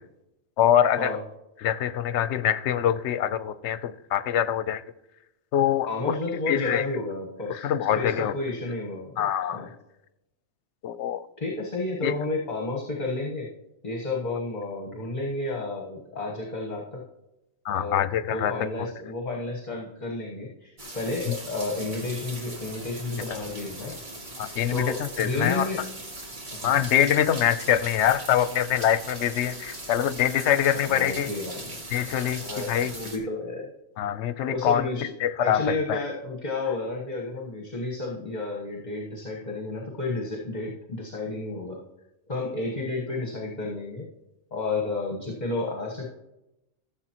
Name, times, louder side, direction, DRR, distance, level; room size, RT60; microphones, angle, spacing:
voice 1, 0.6-1.1 1.6-4.8 5.5-6.1 6.5-6.8 7.5-8.3 9.2-9.7 10.8-11.2 12.0-12.1 17.7-18.5 21.3-21.4 23.3-23.4 24.4-25.7 26.6-31.3 31.9-32.9 34.0-34.9 35.2-36.0, left 10 dB, 75° left, 14 dB, 0.9 m, -24 dB
voice 2, 5.9-7.7 8.0-9.7 11.4-13.5 13.8-17.0 17.7-18.0 18.3-24.0 24.7-25.8 26.5-26.8 30.9-31.8 32.4-33.7 34.5-35.1 35.4-41.8 42.3-44.1 44.5-46.1, left 2 dB, 40° left, -1 dB, 1.4 m, -31 dB
sound 1, 20.8-33.2, right 1 dB, 45° right, 1.7 m, -40 dB
15.0 x 7.2 x 3.0 m, 0.91 s
omnidirectional pair, 1.2 m